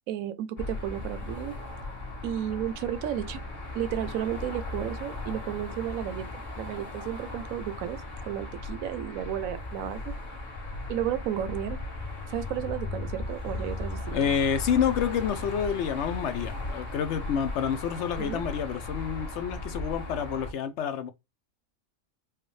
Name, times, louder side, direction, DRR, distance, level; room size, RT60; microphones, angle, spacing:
voice 1, 0.1-1.5 2.2-3.4 3.7-6.3 6.6-10.0 10.9-11.8 12.3-14.3 18.2-18.4, right 11 dB, 80° right, 1.0 m, -33 dB
sound 1, 0.6-20.5, left 2 dB, 35° left, 1.5 m, -37 dB
voice 2, 14.1-21.1, left 8 dB, 65° left, 0.8 m, -28 dB
4.7 x 2.2 x 3.1 m
omnidirectional pair, 1.4 m